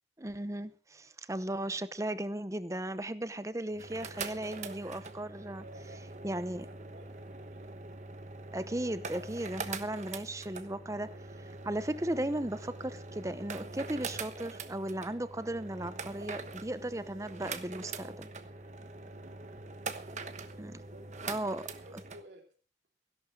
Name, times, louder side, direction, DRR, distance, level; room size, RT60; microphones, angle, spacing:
voice 1, 0.2-5.6 6.2-6.7 8.5-11.2 11.6-18.3 20.6-20.7 21.3-21.6, right 1 dB, 15° right, 0.7 m, -36 dB
sound 1, 3.7-22.2, right 4 dB, 40° right, 1.2 m, -43 dB
voice 2, 5.6-7.7 19.1-19.5 20.1-20.5 20.7-21.1 21.4-22.5, equal, 75° right, 3.2 m, -55 dB
16.5 x 11.5 x 5.2 m
head